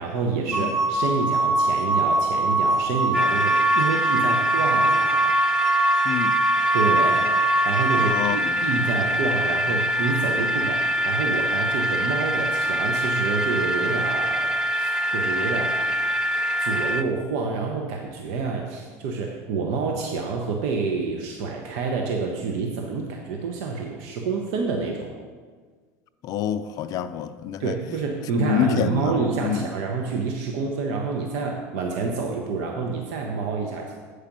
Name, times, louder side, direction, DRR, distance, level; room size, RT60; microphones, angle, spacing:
voice 1, 0.0-5.3 6.7-7.2 7.6-15.8 16.6-25.1 27.6-33.9, right 4 dB, 70° right, 0.9 m, -28 dB
sound 1, 0.5-8.1, right 2 dB, 35° right, 1.1 m, -22 dB
sound 2, 3.1-17.0, equal, 10° right, 0.4 m, -24 dB
voice 2, 6.0-6.4 7.9-8.5 26.2-27.7 28.4-29.7, left 9 dB, 45° left, 0.5 m, -27 dB
8.1 x 4.9 x 6.0 m
supercardioid pair, 115°, 9 cm